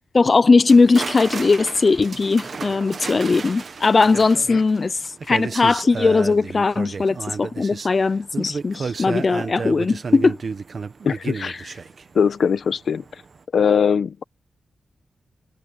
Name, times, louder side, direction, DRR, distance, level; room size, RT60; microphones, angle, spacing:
voice 1, 0.1-10.4 11.3-11.7, left 4 dB, 35° left, 0.4 m, -19 dB
sound 1, 0.7-12.8 13.1-13.4, right 5 dB, 45° right, 1.0 m, -32 dB
voice 2, 11.0-11.5 12.1-13.0 13.5-14.2, left 6 dB, 70° left, 1.2 m, -20 dB
wide cardioid pair, 170°, 0 cm